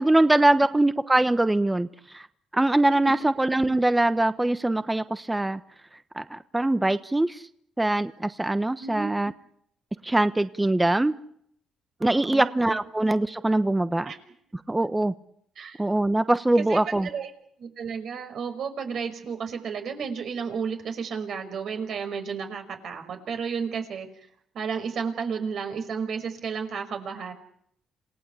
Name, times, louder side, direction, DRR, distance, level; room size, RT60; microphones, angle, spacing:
voice 1, 0.0-2.3 2.5-5.6 6.1-7.4 7.8-9.3 10.0-11.1 12.0-14.1 14.7-15.1 15.8-17.1, right 2 dB, 10° right, 12 dB, 1.1 m, -23 dB
voice 2, 8.8-9.2 12.0-12.8 14.1-14.2 15.6-15.8 16.7-17.3 17.6-24.1 24.5-27.3, right 6 dB, 65° right, 6 dB, 5.7 m, -32 dB
27.5 x 18.0 x 8.4 m, 0.69 s
cardioid pair, 90°, 0 cm